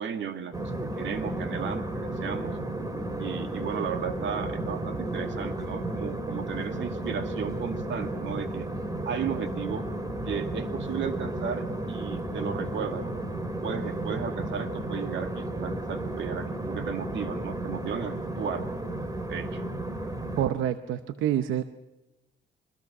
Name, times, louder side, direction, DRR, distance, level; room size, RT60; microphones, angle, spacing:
voice 1, 0.0-2.5 3.2-8.7 9.1-9.9 10.3-18.7 19.3-19.6, right 7 dB, 70° right, 7 dB, 2.2 m, -35 dB
sound 1, 0.5-20.5, right 1 dB, 20° right, 2.3 m, -33 dB
voice 2, 20.4-21.6, right 11 dB, 85° right, 11 dB, 0.8 m, -27 dB
24.0 x 22.0 x 6.0 m, 1.1 s
cardioid pair, 90°, 20 cm